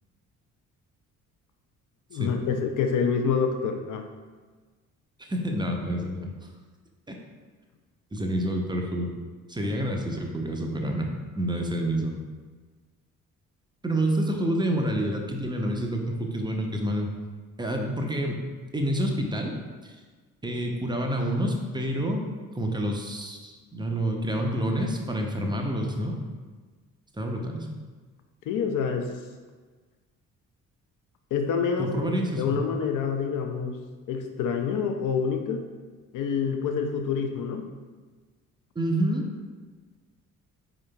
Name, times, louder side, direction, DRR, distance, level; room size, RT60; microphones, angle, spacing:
voice 1, 2.1-4.0 28.5-29.1 31.3-33.8 34.1-35.7 36.1-37.7, left 6 dB, 50° left, 5 dB, 0.6 m, -27 dB
voice 2, 5.2-6.3 8.1-9.1 9.5-11.1 11.4-12.1 13.8-17.1 17.6-18.4 18.7-19.6 19.8-20.0 20.4-22.2 22.5-26.2 27.1-27.8 31.8-32.5 38.8-39.2, right 1 dB, 10° right, 2 dB, 0.5 m, -28 dB
4.5 x 3.8 x 2.2 m, 1.4 s
figure-of-eight pair, 45°, 42 cm